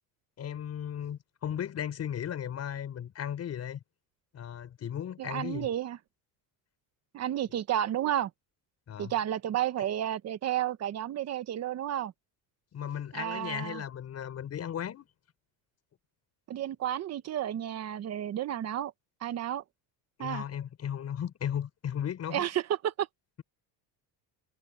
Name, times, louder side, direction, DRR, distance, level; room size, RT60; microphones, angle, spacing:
voice 1, 0.4-3.8 4.3-5.7 8.9-9.1 12.7-15.1 20.2-22.5, left 9 dB, 35° left, 6.2 m, -36 dB
voice 2, 5.2-6.0 7.1-8.3 9.0-12.1 13.1-13.8 16.5-18.9 19.2-19.6 20.2-20.4 22.3-23.1, right 11 dB, 40° right, 1.1 m, -31 dB
cardioid pair, 155°, 41 cm